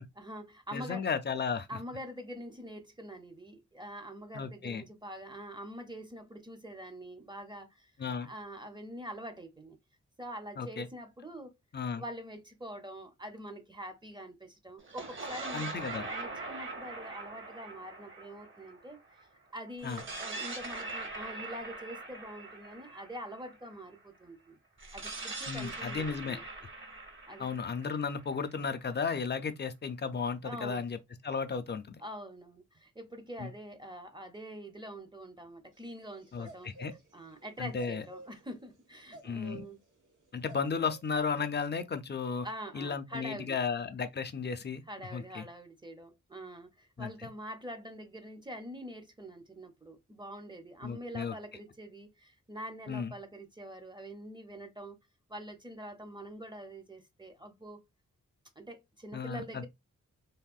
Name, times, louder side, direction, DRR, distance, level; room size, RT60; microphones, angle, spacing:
voice 1, 0.2-1.1 1.7-7.9 8.2-9.8 10.2-11.5 12.0-19.0 19.5-24.6 24.9-26.4 27.3-27.5 30.4-30.9 32.0-36.7 37.1-39.8 42.4-43.6 44.9-55.0 55.3-57.8 58.6-59.7, equal, 15° right, 0.5 m, -45 dB
voice 2, 0.7-1.7 4.3-4.8 8.0-8.3 10.6-10.9 11.7-12.0 15.5-16.1 19.8-20.0 25.5-26.4 27.4-32.0 33.4-33.5 36.3-36.9 37.6-38.1 39.2-39.6 40.3-42.5 42.7-44.8 45.1-45.5 47.0-47.1 50.8-51.3 52.9-53.1 59.1-59.7, left 5 dB, 35° left, 0.4 m, -34 dB
sound 1, 14.8-19.2 19.8-23.7 24.8-28.6, right 3 dB, 40° right, 0.8 m, -42 dB
sound 2, 35.8-37.5 37.7-41.7, right 1 dB, 85° right, 1.2 m, -51 dB
3.4 x 2.1 x 2.3 m
wide cardioid pair, 115°, 31 cm